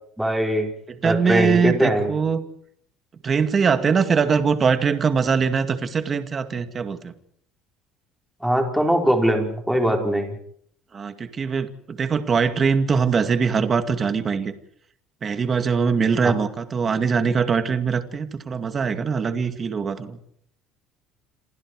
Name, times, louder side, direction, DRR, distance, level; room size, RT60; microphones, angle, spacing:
voice 1, 0.2-0.7 1.0-2.1 8.4-10.3 16.2-16.3, equal, ahead, 2 dB, 4.8 m, -21 dB
voice 2, 0.9-2.4 3.2-7.1 10.9-14.5 15.2-20.2, right 5 dB, 25° right, 9 dB, 2.1 m, -22 dB
28.5 x 27.0 x 4.8 m, 0.64 s
cardioid pair, 150°, 0 cm